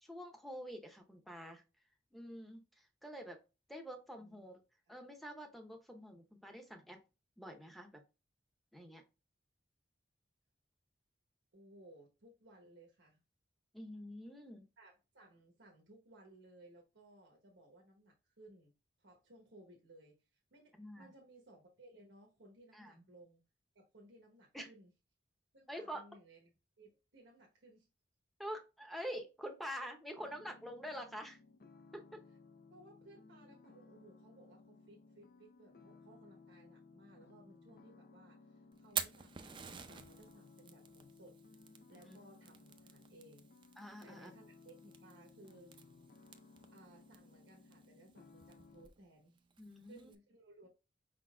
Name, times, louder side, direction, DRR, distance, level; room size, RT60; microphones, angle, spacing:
voice 1, 0.0-1.6 2.1-3.4 3.7-4.6 4.9-7.0 7.4-8.0 8.7-9.0 13.7-14.6 20.8-21.1 22.7-23.0 24.5-24.7 25.7-26.0 28.4-31.4 31.9-32.2 42.1-42.2 43.8-44.3 49.6-50.1, equal, ahead, 0.7 m, -47 dB
voice 2, 4.2-4.9 11.5-13.2 14.8-18.7 19.0-23.4 23.7-24.9 25.5-26.5 26.8-27.9 32.7-41.4 41.9-43.5 44.0-45.8 46.7-49.5 49.8-50.7, right 1 dB, 90° right, 1.0 m, -61 dB
sound 1, 30.2-48.9, left 3 dB, 55° left, 0.5 m, -61 dB
Fire, 38.7-50.1, right 7 dB, 25° right, 0.4 m, -49 dB
5.1 x 3.8 x 2.2 m
head